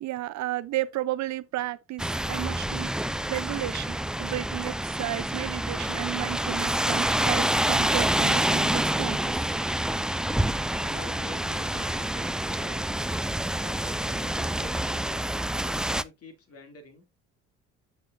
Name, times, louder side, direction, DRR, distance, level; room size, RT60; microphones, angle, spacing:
voice 1, 0.0-2.9 3.3-9.4, right 15 dB, 65° right, 0.8 m, -33 dB
sound 1, 2.0-16.0, right 1 dB, ahead, 0.4 m, -27 dB
voice 2, 10.8-12.9 13.6-15.3 15.7-17.0, left 2 dB, 50° left, 2.8 m, -47 dB
7.9 x 6.8 x 2.6 m
supercardioid pair, 75°, 31 cm